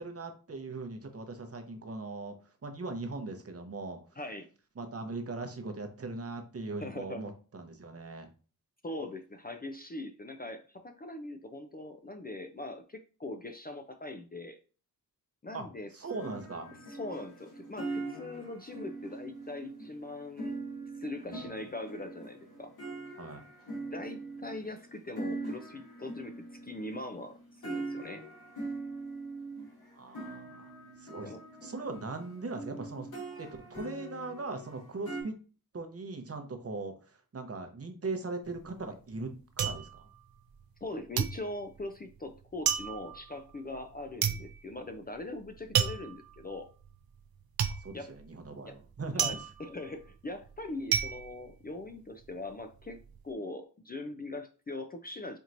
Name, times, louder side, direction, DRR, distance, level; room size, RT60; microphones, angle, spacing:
voice 1, 0.0-2.3 2.6-4.0 4.8-8.3 15.5-15.7 15.9-16.7 21.2-21.5 23.2-23.4 29.9-30.7 31.0-31.3 31.6-33.1 33.4-35.3 35.7-39.3 39.6-40.1 47.8-49.3, right 3 dB, 40° right, 5 dB, 0.8 m, -39 dB
voice 2, 4.2-4.5 6.8-7.3 8.8-14.6 15.4-15.9 16.9-20.5 21.0-22.7 23.9-26.4 26.6-28.2 31.2-31.4 40.8-46.7 47.9-48.1 48.6-48.8 49.1-55.4, left 2 dB, 25° left, 7 dB, 0.4 m, -41 dB
sound 1, 16.1-35.2, right 2 dB, 80° left, 1.7 m, -42 dB
sound 2, 38.5-40.9 41.2-52.3 52.6-53.2, right 8 dB, 75° right, 0.5 m, -33 dB
4.4 x 2.9 x 2.5 m, 0.37 s
cardioid pair, 65°, 37 cm